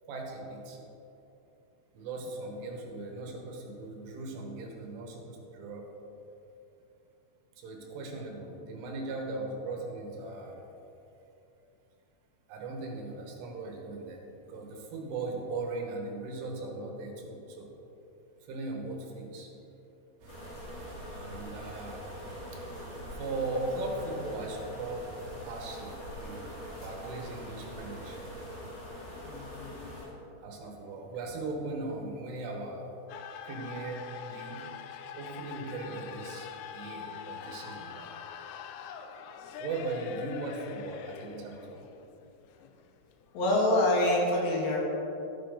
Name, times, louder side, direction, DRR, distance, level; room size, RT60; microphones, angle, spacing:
voice 1, 0.0-0.8 2.0-5.9 7.6-10.6 12.5-17.7 18.5-19.5 21.0-22.0 22.5-22.7 23.1-25.0 25.4-26.5 26.8-28.3 30.4-32.9 33.4-34.7 35.2-38.2 39.6-41.8, right 2 dB, 85° right, 1 dB, 3.7 m, -38 dB
sound 1, 20.2-28.6, equal, 60° right, 3.3 m, -50 dB
sound 2, 20.3-30.1, equal, 40° left, 2.2 m, -43 dB
voice 2, 29.3-29.9 43.3-44.8, left 1 dB, 70° left, -3 dB, 3.6 m, -26 dB
sound 3, 33.1-44.0, left 7 dB, 85° left, 3.2 m, -44 dB
12.5 x 8.7 x 3.9 m, 2.9 s
omnidirectional pair, 5.6 m